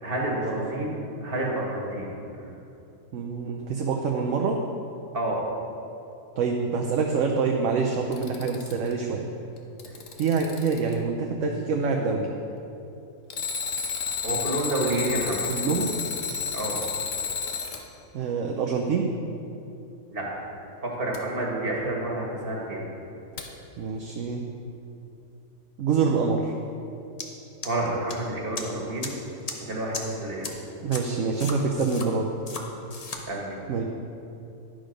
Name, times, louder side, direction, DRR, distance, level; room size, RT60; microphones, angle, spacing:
voice 1, 0.0-2.1 2.4-2.5 5.1-5.4 9.9-10.0 14.2-15.4 16.5-16.8 20.1-20.3 20.8-22.8 27.6-29.2 29.7-30.5 33.3-33.6, right 1 dB, 40° right, -3 dB, 1.9 m, -29 dB
voice 2, 3.1-4.6 6.4-9.3 10.2-12.3 15.5-16.0 18.1-19.1 23.8-24.4 25.8-26.5 30.8-32.3 33.7-33.8, right 5 dB, 65° right, 1 dB, 1.0 m, -26 dB
Alarm, 7.9-8.9 9.6-10.9 13.3-17.8 21.1-21.2 23.4-23.5, left 6 dB, 65° left, 1.2 m, -31 dB
sound 1, 27.2-27.3 27.6-28.1 28.6-28.7 29.0-29.1 29.5-29.6 29.9-30.0 30.4-30.5 30.9-31.0 31.4-32.1 32.5-32.6 32.9-33.2, left 4 dB, 35° left, 0.7 m, -34 dB
10.5 x 6.4 x 5.1 m, 2.8 s
omnidirectional pair, 1.5 m